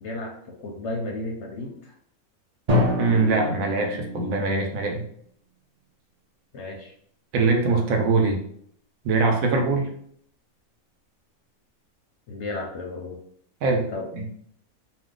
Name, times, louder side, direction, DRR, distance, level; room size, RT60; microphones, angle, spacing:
voice 1, 0.0-1.9 6.5-6.9 12.3-13.2 13.9-14.1, left 2 dB, 65° left, 0 dB, 0.7 m, -33 dB
Drum, 2.7-4.6, left 1 dB, 45° right, 0.5 m, -26 dB
voice 2, 3.0-5.0 7.3-8.4 9.0-9.9 13.6-13.9 14.1-14.3, right 3 dB, 75° right, 2 dB, 1.0 m, -22 dB
2.6 x 2.2 x 3.6 m, 0.65 s
omnidirectional pair, 1.5 m